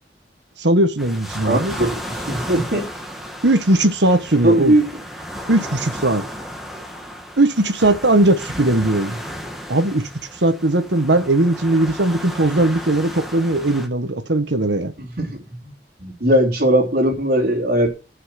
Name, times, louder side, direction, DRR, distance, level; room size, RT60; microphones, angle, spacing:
voice 1, 0.6-1.7 3.4-4.7 5.5-6.2 7.4-9.2 9.7-10.1 10.4-14.9, right 2 dB, 85° right, 1.4 m, -18 dB
sound 1, 1.0-13.9, equal, ahead, 1.6 m, -34 dB
voice 2, 1.4-3.0 4.4-4.8 15.0-15.7 16.0-17.9, right 1 dB, 60° right, 3.1 m, -19 dB
11.5 x 5.9 x 6.0 m
head